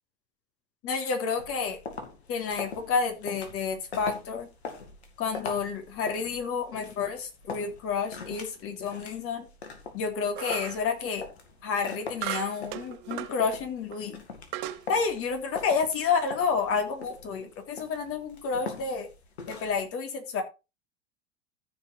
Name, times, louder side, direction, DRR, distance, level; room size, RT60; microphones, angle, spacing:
voice 1, 0.8-1.8 2.3-4.5 5.2-9.5 9.9-11.2 11.6-14.2 14.9-19.1 19.5-20.4, left 5 dB, 45° left, 3.0 m, -30 dB
sound 1, 1.4-19.9, left 4 dB, 85° left, 2.3 m, -43 dB
sound 2, 10.3-10.9 12.2-13.4 13.9-14.0 14.5-14.8, right 14 dB, 60° right, 1.2 m, -36 dB
14.0 x 5.2 x 4.2 m
hypercardioid pair, 85°, 31 cm